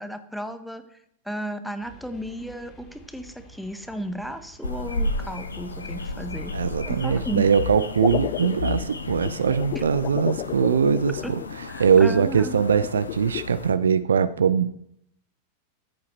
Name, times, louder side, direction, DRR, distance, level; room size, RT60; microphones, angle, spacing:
voice 1, 0.0-6.5 6.8-7.5 9.7-9.8 11.2-11.3 11.7-12.7, right 1 dB, ahead, 9 dB, 1.0 m, -34 dB
sound 1, 1.8-12.6, right 1 dB, 25° left, 2.9 m, -53 dB
sound 2, 4.6-13.7, left 3 dB, 75° left, 0.8 m, -33 dB
voice 2, 6.5-11.4 11.8-14.8, right 6 dB, 70° right, 14 dB, 0.4 m, -21 dB
sound 3, 7.7-11.9 12.8-13.5, left 15 dB, 45° left, 0.4 m, -32 dB
14.0 x 8.3 x 3.1 m, 0.71 s
figure-of-eight pair, 90°, 0 cm